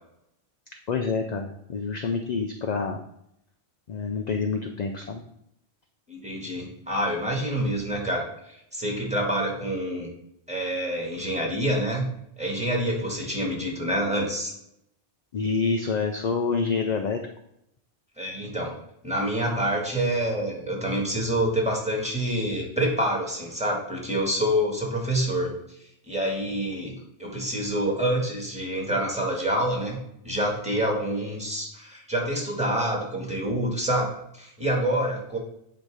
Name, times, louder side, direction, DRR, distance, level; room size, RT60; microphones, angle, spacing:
voice 1, 0.9-3.0 3.9-5.2 15.3-17.2, left 4 dB, 50° left, 4 dB, 0.5 m, -27 dB
voice 2, 6.1-10.1 10.5-12.0 12.4-14.5 18.2-18.8 19.0-25.6 26.1-30.0 30.2-35.4, right 1 dB, 5° right, -2 dB, 1.8 m, -27 dB
9.0 x 3.1 x 4.8 m, 0.76 s
omnidirectional pair, 1.1 m